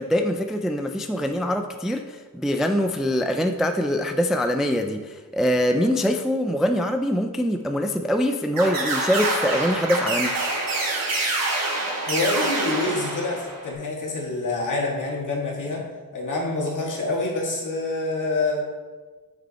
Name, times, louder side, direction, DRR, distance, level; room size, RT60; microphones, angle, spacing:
voice 1, 0.0-10.3, equal, ahead, 6 dB, 0.3 m, -23 dB
sound 1, 8.6-13.7, right 2 dB, 65° right, 2.5 m, -26 dB
voice 2, 12.1-15.8 16.1-18.6, left 2 dB, 55° left, -1 dB, 2.0 m, -26 dB
8.4 x 6.2 x 4.2 m, 1.3 s
wide cardioid pair, 135°, 36 cm